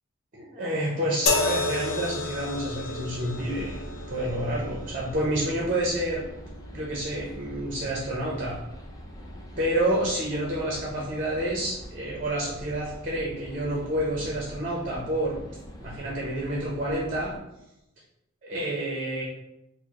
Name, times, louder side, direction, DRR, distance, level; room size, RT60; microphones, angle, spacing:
voice 1, 0.3-3.8 4.1-6.2 6.7-8.6 9.6-15.4 15.8-17.3 18.4-19.2, right 1 dB, 40° right, -3 dB, 0.7 m, -29 dB
sound 1, 1.3-14.6 15.5-15.7, left 3 dB, 85° left, 0.6 m, -35 dB
sound 2, 3.2-17.4, equal, 20° left, 0.4 m, -44 dB
4.7 x 2.1 x 2.9 m, 0.86 s
head